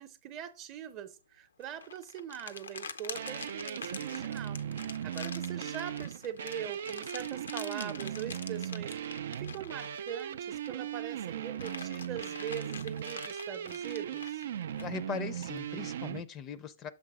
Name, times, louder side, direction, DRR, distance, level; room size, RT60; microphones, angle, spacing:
voice 1, 0.0-9.0 9.4-14.4, right 9 dB, 35° right, 0.7 m, -42 dB
sound 1, 1.6-10.9 11.2-15.4, left 5 dB, 90° left, 0.6 m, -45 dB
sound 2, 3.1-16.2, right 9 dB, 65° right, 0.3 m, -38 dB
voice 2, 14.8-16.9, left 7 dB, 25° left, 0.5 m, -39 dB
6.7 x 3.2 x 4.8 m
hypercardioid pair, 135°, 0 cm